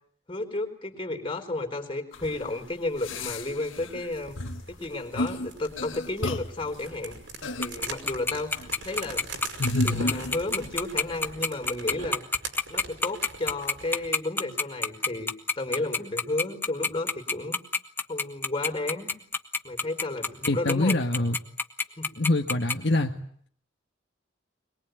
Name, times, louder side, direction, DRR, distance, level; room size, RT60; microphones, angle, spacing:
voice 1, 0.3-4.4 4.7-7.2 7.6-9.2 9.8-12.2 12.7-15.3 15.6-17.6 18.1-19.1 19.6-21.0 22.0-22.1, left 2 dB, 25° left, 3 dB, 4.1 m, -32 dB
sound 1, 2.1-2.3 3.0-4.1 4.4-4.7 5.1-5.5 5.8-6.7 7.4-7.7 8.3-8.7 9.6-10.7 11.0-11.1, left 1 dB, 85° left, 1.9 m, -31 dB
sound 2, 4.1-14.2, right 3 dB, 70° right, 5.4 m, -43 dB
Tick-tock, 7.6-22.7, left 3 dB, 10° left, 1.3 m, -26 dB
voice 2, 20.5-21.4 22.2-23.1, left 2 dB, 60° left, 2 dB, 1.7 m, -24 dB
23.0 x 22.0 x 9.2 m, 0.62 s
head